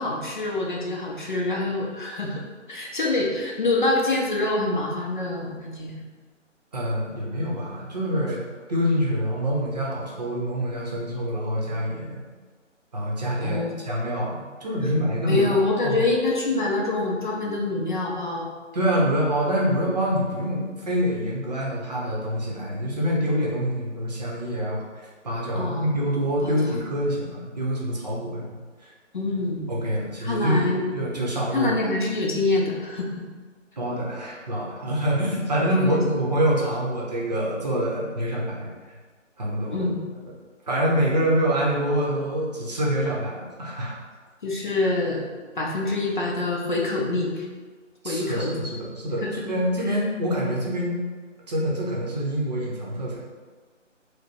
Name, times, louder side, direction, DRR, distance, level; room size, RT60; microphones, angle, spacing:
voice 1, 0.0-2.4 2.7-6.0 13.4-13.8 15.3-18.5 25.5-25.9 26.4-26.7 29.1-29.7 30.2-30.9 31.5-33.2 35.1-35.3 35.8-36.0 39.7-40.0 44.4-45.3 45.6-47.5 48.0-48.6 49.2-49.5 49.8-50.0, left 2 dB, 40° left, -2 dB, 0.6 m, -26 dB
voice 2, 6.7-12.2 12.9-15.5 15.8-16.0 18.7-28.6 28.8-28.9 29.7-30.6 30.9-31.7 33.8-38.7 39.4-39.9 40.7-44.0 48.0-51.0 51.5-53.2, equal, 35° right, -4 dB, 0.8 m, -26 dB
4.8 x 2.2 x 4.5 m, 1.4 s
figure-of-eight pair, 160°, 38 cm